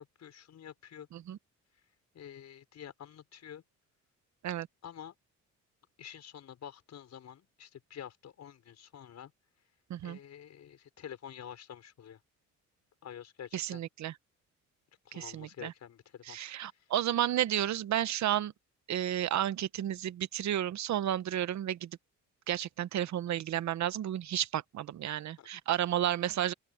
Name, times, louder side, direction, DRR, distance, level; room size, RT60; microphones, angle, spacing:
voice 1, 0.0-1.1 2.1-3.6 4.8-5.1 6.0-9.3 10.0-12.2 13.0-13.9 15.0-16.4 16.7-16.9 25.4-25.5, left 9 dB, 65° left, 5.9 m, -48 dB
voice 2, 13.5-14.1 15.1-15.7 16.3-18.5 18.9-21.9 22.5-26.5, right 11 dB, 65° right, 1.0 m, -32 dB
open air
cardioid pair, 90°, 30 cm